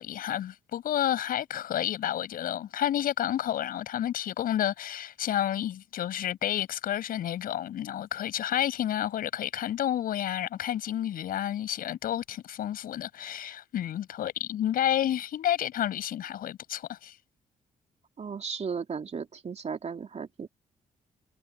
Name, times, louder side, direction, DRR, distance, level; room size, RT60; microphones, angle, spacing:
voice 1, 0.0-17.1, left 11 dB, 70° left, 6.7 m, -30 dB
voice 2, 18.2-20.5, right 6 dB, 45° right, 3.1 m, -35 dB
hypercardioid pair, 45°, 15 cm